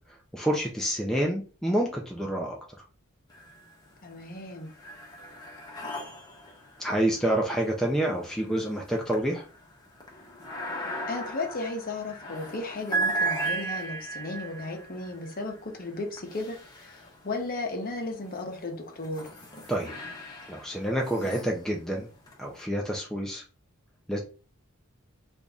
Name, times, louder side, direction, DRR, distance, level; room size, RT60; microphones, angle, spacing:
voice 1, 0.3-2.6 6.8-9.4 19.7-19.9 20.5-22.1 22.4-23.4 24.1-24.2, right 1 dB, ahead, 0.4 m, -28 dB
sound 1, 3.3-4.0 4.3-17.5 18.1-22.6, right 2 dB, 20° left, 1.0 m, -37 dB
voice 2, 4.0-4.7 11.1-19.3, left 2 dB, 45° left, 0.9 m, -35 dB
3.0 x 2.6 x 3.5 m
head